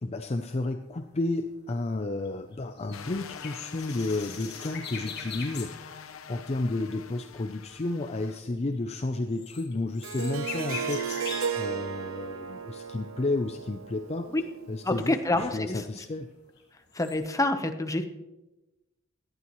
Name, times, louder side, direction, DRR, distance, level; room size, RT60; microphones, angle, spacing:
voice 1, 0.0-11.1 11.5-14.3 14.7-16.3, left 2 dB, 30° left, 6 dB, 0.5 m, -32 dB
sound 1, 0.8-5.8 6.1-6.3 6.6-11.6 12.1-12.8 13.3-14.5 14.8-14.9 15.4-16.6 16.9-17.2, left 6 dB, 55° left, 2.6 m, -43 dB
sound 2, 2.9-8.4, left 6 dB, 80° left, 0.8 m, -45 dB
Harp, 10.0-15.0, right 7 dB, 85° right, 0.8 m, -35 dB
voice 2, 14.8-16.0 16.9-18.0, left 2 dB, 15° left, 7 dB, 0.9 m, -27 dB
17.5 x 11.5 x 3.1 m, 1.0 s
head